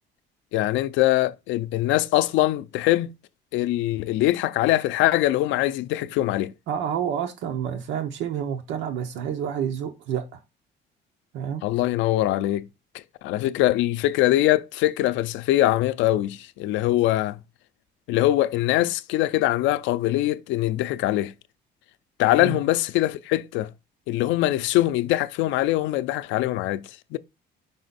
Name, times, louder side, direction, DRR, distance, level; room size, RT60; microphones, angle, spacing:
voice 1, 0.5-3.1 3.5-6.5 11.6-12.7 12.9-17.4 18.1-21.3 22.2-23.7 24.1-27.2, left 15 dB, 85° left, 0.5 m, -23 dB
voice 2, 6.7-10.4 11.3-11.6 22.4-22.6, right 8 dB, 80° right, 0.9 m, -29 dB
5.5 x 4.3 x 4.1 m
cardioid pair, 175°, 19 cm